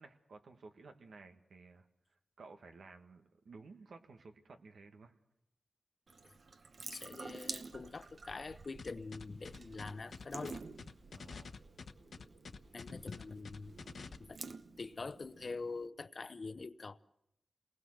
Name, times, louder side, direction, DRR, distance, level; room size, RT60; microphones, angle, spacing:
voice 1, 0.0-1.9 2.4-5.1 11.1-11.5, right 4 dB, 90° right, 1.7 m, -55 dB
Water tap faucet / Sink (filling or washing) / Drip, 6.1-15.9, right 4 dB, 70° right, 1.0 m, -51 dB
voice 2, 6.9-10.6 12.7-13.8 14.2-14.4 14.8-17.0, left 4 dB, 60° left, 0.8 m, -44 dB
sound 1, 8.8-14.2, left 4 dB, 75° left, 1.2 m, -49 dB
28.0 x 20.0 x 6.5 m
cardioid pair, 55°, 0 cm